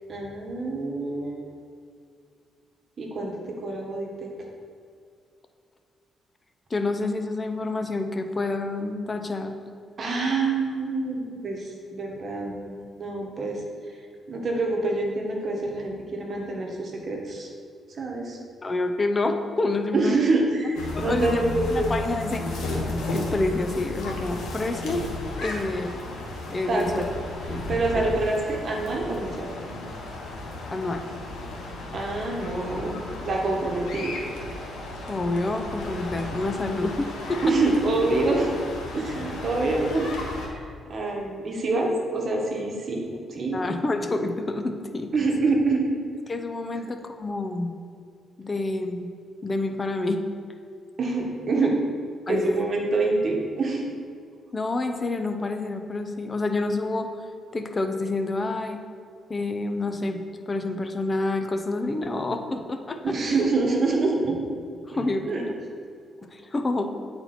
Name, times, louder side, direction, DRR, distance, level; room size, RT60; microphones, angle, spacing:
voice 1, 0.1-1.4 3.0-4.3 10.0-13.6 14.3-17.5 18.0-18.4 19.9-21.9 26.7-27.1 27.5-29.5 31.9-34.2 37.4-38.5 38.9-40.1 40.5-43.0 43.3-43.6 45.1-45.9 51.0-51.8 52.3-53.8 63.0-64.4 64.9-65.4, right 3 dB, 45° right, 0 dB, 1.3 m, -26 dB
voice 2, 6.7-9.6 18.6-20.2 21.1-21.4 21.7-22.4 23.1-25.0 25.4-25.9 26.5-27.0 27.5-27.6 27.9-28.0 30.7-31.0 35.1-37.4 43.1-43.2 43.5-45.1 46.3-47.7 48.4-49.1 49.4-50.2 52.3-52.7 54.5-57.1 57.5-58.8 59.3-63.0 64.9-65.6 66.3-66.9, left 2 dB, 25° left, 6 dB, 0.6 m, -28 dB
sound 1, 20.7-40.5, left 2 dB, 90° left, 1.3 m, -34 dB
8.5 x 4.4 x 4.3 m, 2.3 s
cardioid pair, 110°, 0 cm